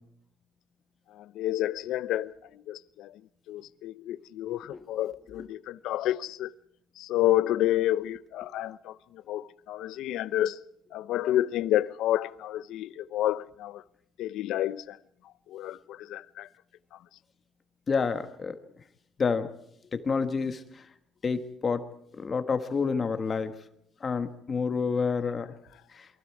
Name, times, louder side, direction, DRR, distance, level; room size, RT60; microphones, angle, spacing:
voice 1, 1.1-6.5 7.0-10.6 10.9-13.8 14.2-15.0 15.5-16.5 16.9-17.0, left 13 dB, 70° left, 0.8 m, -30 dB
voice 2, 17.9-18.6 19.2-19.5 19.9-20.6 21.2-21.8 22.2-23.5 24.0-25.5 26.0-26.1, left 5 dB, 30° left, 1.5 m, -28 dB
29.0 x 23.5 x 4.7 m
cardioid pair, 145°, 0 cm